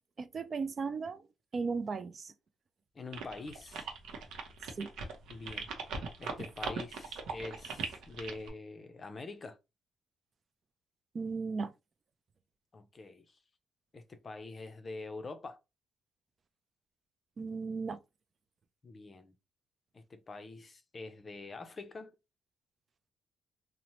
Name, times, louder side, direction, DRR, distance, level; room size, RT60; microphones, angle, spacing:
voice 1, 0.2-1.2 1.5-2.3 4.8-4.9 11.1-11.7 17.4-18.0, right 4 dB, 45° right, 0.3 m, -36 dB
voice 2, 2.9-3.9 5.3-5.8 6.2-9.6 12.7-13.4 13.9-15.6 18.8-19.3 19.9-22.1, left 3 dB, 35° left, 0.5 m, -45 dB
sound 1, 3.1-8.5, right 5 dB, 80° right, 0.6 m, -40 dB
2.8 x 2.0 x 2.9 m
cardioid pair, 90°, 0 cm